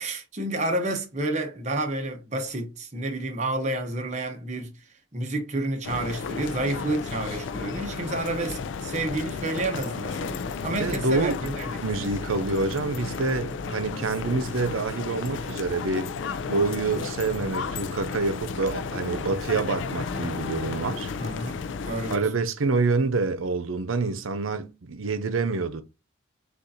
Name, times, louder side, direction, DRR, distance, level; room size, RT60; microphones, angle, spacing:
voice 1, 0.0-4.8 5.1-11.8 21.1-22.3, right 2 dB, 35° right, 0.9 m, -30 dB
sound 1, 5.8-22.2, left 5 dB, 70° left, 0.4 m, -33 dB
voice 2, 10.8-11.4 11.8-16.1 16.4-21.1 22.1-25.8, right 3 dB, 90° right, 0.7 m, -27 dB
6.4 x 2.5 x 2.7 m
head